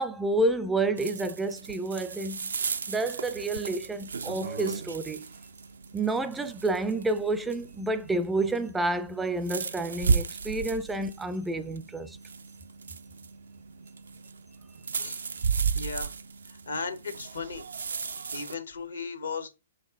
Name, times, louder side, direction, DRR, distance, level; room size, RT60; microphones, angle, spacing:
voice 1, 0.0-2.5 2.9-5.2 5.9-12.2, right 2 dB, 10° right, 0.4 m, -29 dB
sound 1, 1.0-18.5, right 5 dB, 75° right, 0.4 m, -35 dB
voice 2, 15.7-16.1 16.5-17.7 18.3-19.5, left 4 dB, 80° left, 0.9 m, -36 dB
4.5 x 2.8 x 3.6 m
figure-of-eight pair, 120°, 0 cm